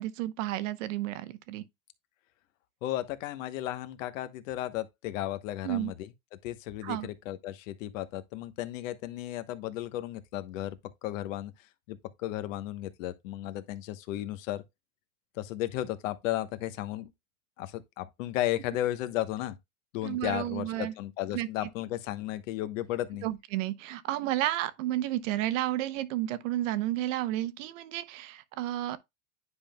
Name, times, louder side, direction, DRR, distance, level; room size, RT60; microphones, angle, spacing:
voice 1, 0.0-1.6 5.6-5.9 6.8-7.1 20.0-20.9 21.3-21.7 23.2-29.0, right 14 dB, 60° right, 0.9 m, -32 dB
voice 2, 2.8-6.1 6.4-11.5 11.9-14.6 15.3-17.1 17.6-19.6 19.9-23.3, left 14 dB, 60° left, 1.1 m, -34 dB
9.9 x 5.5 x 2.2 m
supercardioid pair, 135°, 43 cm